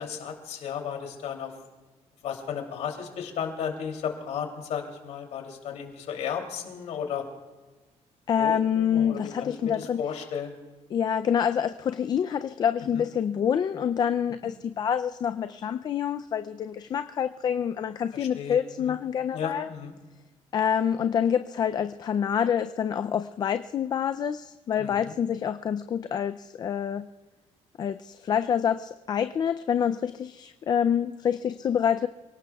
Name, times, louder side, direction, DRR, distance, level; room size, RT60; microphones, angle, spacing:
voice 1, 0.0-1.5 2.2-7.2 8.4-10.6 12.9-13.0 18.1-18.9 19.3-19.9 24.8-25.2, left 7 dB, 70° left, 3 dB, 2.9 m, -34 dB
voice 2, 8.3-10.0 10.9-19.7 20.5-27.0 27.8-32.1, left 8 dB, 35° left, 9 dB, 0.4 m, -27 dB
28.0 x 18.0 x 2.3 m, 1.2 s
cardioid pair, 165°, 12 cm